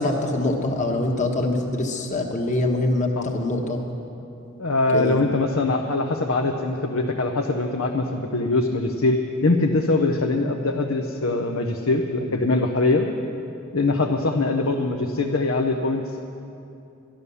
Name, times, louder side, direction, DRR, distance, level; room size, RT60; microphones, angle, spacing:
voice 1, 0.0-3.8 4.9-5.2, left 2 dB, 35° left, 2 dB, 1.3 m, -24 dB
voice 2, 4.6-13.1 13.7-16.2, left 2 dB, 75° left, 2 dB, 0.8 m, -22 dB
12.5 x 11.5 x 6.9 m, 2.8 s
head